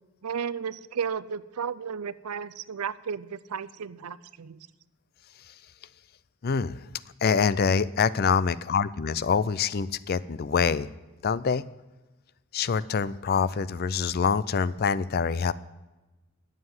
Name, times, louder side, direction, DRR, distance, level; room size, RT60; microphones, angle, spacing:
voice 1, 0.2-4.7, right 7 dB, 90° right, 17 dB, 0.5 m, -34 dB
voice 2, 6.4-6.8 7.2-10.9 11.2-11.6 12.5-15.5, left 6 dB, 45° left, 18 dB, 0.4 m, -25 dB
11.0 x 7.4 x 7.8 m, 1.1 s
head